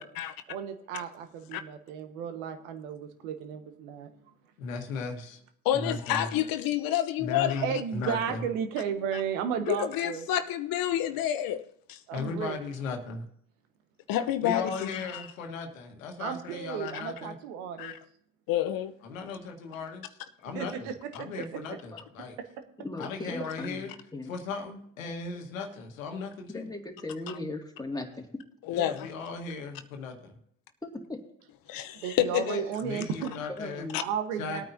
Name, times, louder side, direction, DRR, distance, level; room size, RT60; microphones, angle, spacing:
voice 1, 0.5-4.1 7.6-10.2 12.1-12.6 16.2-17.9 20.5-21.4 32.0-33.3 34.0-34.7, right 8 dB, 80° right, 1.4 m, -34 dB
voice 2, 4.6-5.4 5.7-6.3 7.2-8.4 12.1-13.3 14.4-17.3 19.0-20.0 20.4-22.4 23.0-23.9 24.2-26.7 28.7-30.4 32.8-33.9 34.4-34.7, left 4 dB, 90° left, 1.6 m, -37 dB
voice 3, 5.6-7.7 9.1-9.2 9.7-12.0 14.1-15.3 17.8-18.0 18.5-18.9 28.6-29.1 31.7-32.6 33.9-34.0, left 12 dB, 60° left, 0.9 m, -29 dB
voice 4, 22.8-24.3 26.5-28.3 30.8-31.2 33.6-34.0, left 2 dB, 10° left, 2.2 m, -38 dB
19.5 x 9.1 x 2.7 m
hypercardioid pair, 60°, 39 cm